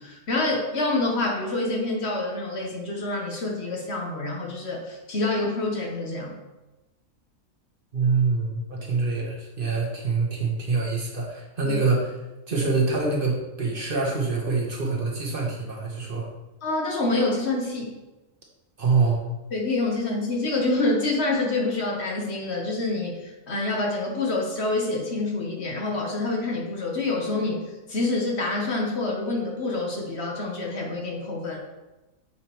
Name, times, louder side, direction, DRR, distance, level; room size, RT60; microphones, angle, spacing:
voice 1, 0.0-6.3 11.6-11.8 16.6-17.9 19.5-27.6 27.9-31.6, left 2 dB, 55° left, 0 dB, 1.2 m, -27 dB
voice 2, 7.9-12.2 12.5-16.3 18.8-19.2, right 4 dB, 45° right, -2 dB, 1.2 m, -25 dB
7.0 x 5.0 x 2.9 m, 1.0 s
omnidirectional pair, 1.4 m